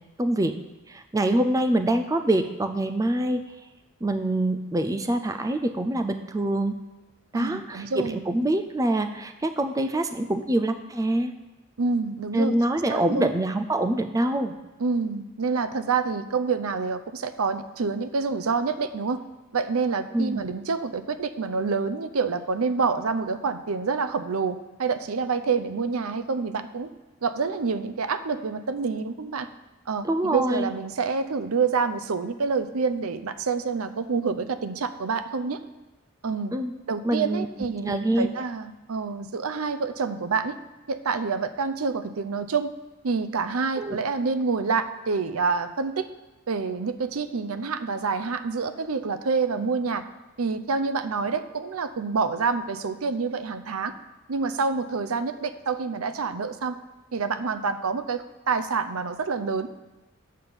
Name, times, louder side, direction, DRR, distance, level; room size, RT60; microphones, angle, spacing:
voice 1, 0.2-0.6 0.9-3.4 4.0-6.7 7.3-11.3 12.3-14.6 20.1-20.5 30.0-30.7 36.5-36.7 37.0-37.5 37.8-38.3 43.8-44.0, right 1 dB, 15° right, 8 dB, 0.4 m, -25 dB
voice 2, 7.3-8.2 11.8-12.6 12.9-13.3 14.8-19.2 19.5-26.9 27.2-29.5 29.9-35.6 36.2-36.5 36.9-40.5 40.9-42.7 43.0-46.1 46.5-50.0 50.4-53.9 54.3-56.8 57.1-59.7, right 4 dB, 80° right, 10 dB, 0.6 m, -27 dB
7.5 x 5.7 x 7.0 m, 1.1 s
head